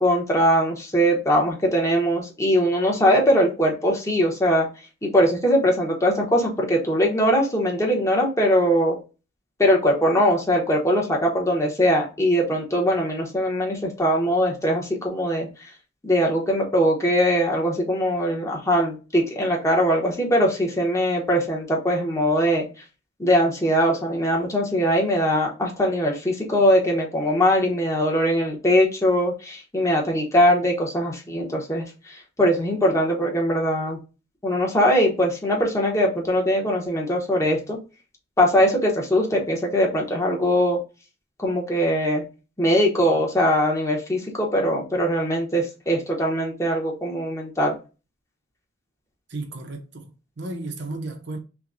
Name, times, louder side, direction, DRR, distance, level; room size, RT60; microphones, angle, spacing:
voice 1, 0.0-4.7 5.0-9.0 9.6-15.5 16.0-22.7 23.2-34.0 34.4-37.8 38.4-40.8 41.4-42.2 42.6-47.8, equal, 15° left, 1.0 m, -21 dB
voice 2, 49.3-51.4, right 2 dB, 60° right, 0.8 m, -34 dB
5.7 x 2.3 x 2.6 m
head